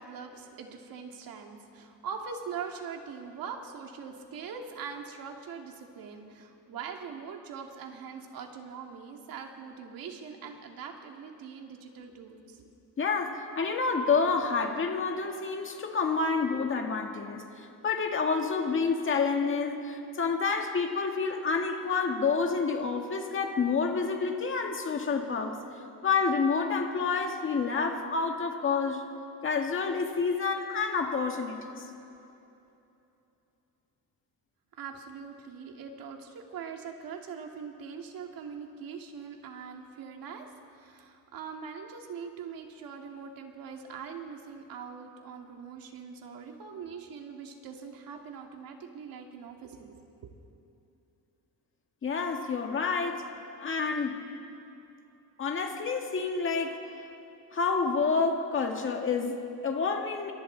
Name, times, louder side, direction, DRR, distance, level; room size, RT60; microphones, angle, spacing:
voice 1, 0.0-12.7 34.8-50.3, right 6 dB, 70° right, 2 dB, 2.3 m, -42 dB
voice 2, 13.0-25.6 26.0-29.0 29.4-31.8 52.0-53.2 53.6-54.2 55.4-56.8 57.5-60.3, left 5 dB, 35° left, 3 dB, 1.9 m, -29 dB
28.0 x 24.0 x 4.0 m, 2.8 s
cardioid pair, 165°, 36 cm